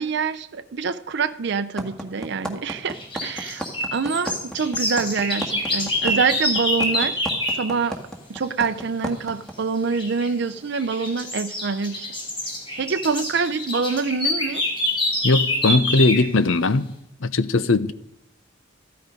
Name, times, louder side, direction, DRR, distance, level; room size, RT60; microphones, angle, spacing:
voice 1, 0.0-3.6 3.9-7.2 7.5-8.0 8.3-12.1 12.8-14.6, right 5 dB, 60° right, 0.5 m, -25 dB
sound 1, 1.8-9.5, right 1 dB, 5° left, 1.7 m, -31 dB
sound 2, 2.9-7.7 9.9-10.3 10.7-16.3, left 1 dB, 25° left, 3.9 m, -26 dB
voice 2, 15.2-16.9 17.2-17.9, left 3 dB, 90° left, 0.8 m, -19 dB
14.5 x 12.5 x 5.2 m
head